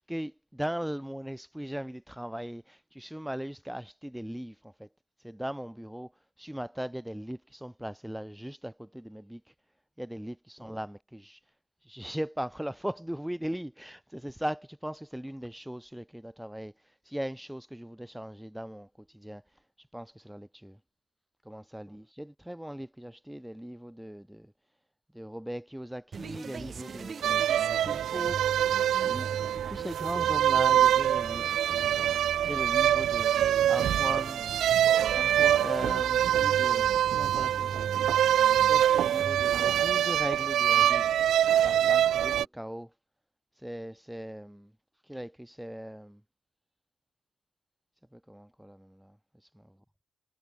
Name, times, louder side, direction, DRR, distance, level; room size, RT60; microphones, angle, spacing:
voice 1, 0.0-4.9 5.2-6.1 6.4-9.5 10.0-11.4 11.8-20.8 21.4-24.5 25.1-28.5 29.0-32.0 32.4-34.5 35.1-37.9 38.6-41.1 41.6-42.9 43.5-44.7 45.0-46.2 48.1-49.6, equal, 5° right, 2.4 m, -39 dB
sound 1, 26.1-39.8, right 6 dB, 45° right, 2.0 m, -41 dB
sound 2, 27.2-42.4, right 11 dB, 70° right, 1.2 m, -25 dB
cardioid pair, 90°, 0 cm